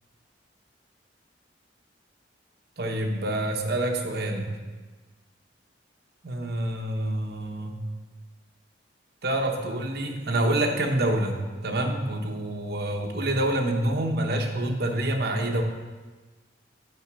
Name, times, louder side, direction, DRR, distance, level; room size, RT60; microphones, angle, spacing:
voice 1, 2.8-4.6 6.2-7.8 9.2-15.6, right 1 dB, 55° right, 2 dB, 1.1 m, -27 dB
7.9 x 5.1 x 7.4 m, 1.3 s
head